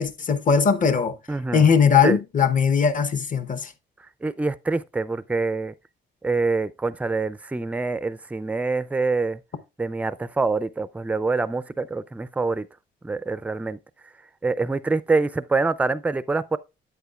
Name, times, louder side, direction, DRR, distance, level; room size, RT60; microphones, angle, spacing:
voice 1, 0.0-1.1 1.5-3.7, left 6 dB, 40° left, 0.8 m, -19 dB
voice 2, 1.3-1.7 2.0-2.2 4.2-5.7 6.2-9.4 9.8-12.6 13.0-13.8 14.4-16.6, right 3 dB, 5° right, 0.3 m, -25 dB
8.9 x 8.1 x 2.3 m
cardioid pair, 90°, 20 cm